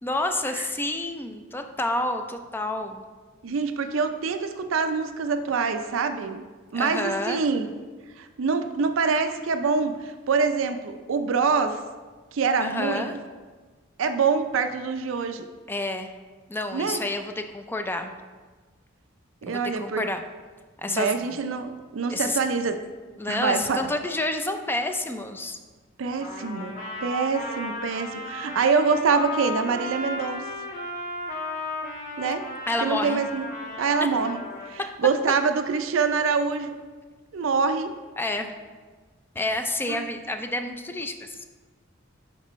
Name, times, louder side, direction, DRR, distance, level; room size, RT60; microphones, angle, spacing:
voice 1, 0.0-3.0 6.7-7.4 12.6-13.1 15.7-16.1 16.5-18.1 19.5-20.2 20.8-21.2 22.1-22.4 23.2-25.6 32.7-33.2 34.0-34.1 38.2-38.5 39.4-41.5, left 2 dB, 10° left, 6 dB, 0.4 m, -29 dB
voice 2, 3.4-6.4 6.7-7.7 8.2-11.8 12.3-13.2 14.0-15.5 16.7-17.0 19.4-20.0 20.9-22.8 23.3-23.8 26.0-26.7 27.0-30.5 32.2-32.5 32.8-33.5 33.8-34.4 34.7-36.8 37.3-37.9 39.9-40.1, right 5 dB, 70° right, 8 dB, 0.5 m, -25 dB
Trumpet, 26.2-34.7, left 2 dB, 40° left, 1.5 m, -35 dB
8.1 x 5.3 x 3.1 m, 1.4 s
head